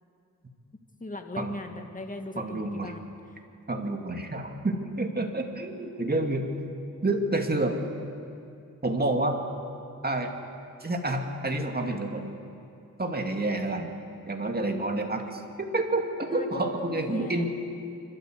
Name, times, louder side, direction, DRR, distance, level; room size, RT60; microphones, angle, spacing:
voice 1, 1.0-3.4 16.3-17.4, left 2 dB, 25° left, 5 dB, 1.9 m, -39 dB
voice 2, 2.4-2.9 3.7-6.5 7.0-7.8 8.8-9.4 10.0-10.3 10.8-12.3 13.0-13.9 14.3-17.4, right 2 dB, 30° right, 3 dB, 2.3 m, -29 dB
26.5 x 13.0 x 8.0 m, 2.6 s
cardioid pair, 80°, 34 cm